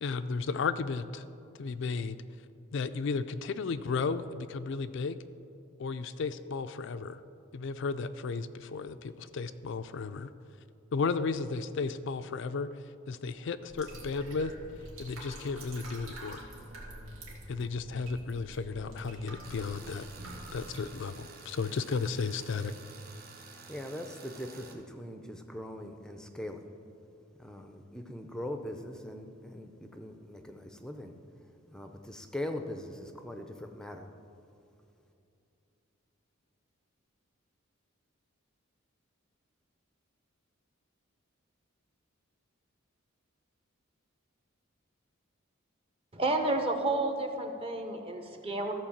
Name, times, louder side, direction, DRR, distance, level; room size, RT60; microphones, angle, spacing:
voice 1, 0.0-1.2 1.6-2.2 2.7-5.2 5.8-7.2 7.5-10.3 10.9-12.7 13.1-14.5 15.0-16.4 17.5-20.1 20.5-22.7, left 4 dB, 60° left, 11 dB, 0.4 m, -34 dB
sound 1, 13.7-20.8, right 1 dB, 85° right, 2.3 m, -46 dB
Tools, 19.4-24.7, right 4 dB, 45° right, 1.2 m, -51 dB
voice 2, 23.7-26.7 27.4-31.1 31.7-34.1, left 1 dB, 5° left, 5 dB, 0.5 m, -41 dB
voice 3, 46.1-48.7, right 2 dB, 25° right, 5 dB, 0.9 m, -31 dB
14.0 x 4.6 x 7.2 m, 2.7 s
head